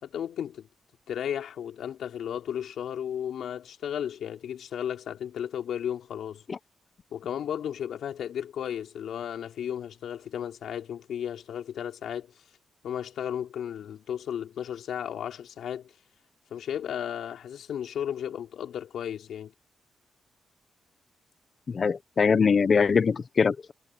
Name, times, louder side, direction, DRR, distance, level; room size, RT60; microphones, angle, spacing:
voice 1, 0.0-0.7 1.1-6.4 7.1-12.4 12.8-15.9 16.5-19.5, left 9 dB, 80° left, 4.2 m, -34 dB
voice 2, 21.7-23.7, left 5 dB, 45° left, 0.9 m, -23 dB
cardioid pair, 105°, 0 cm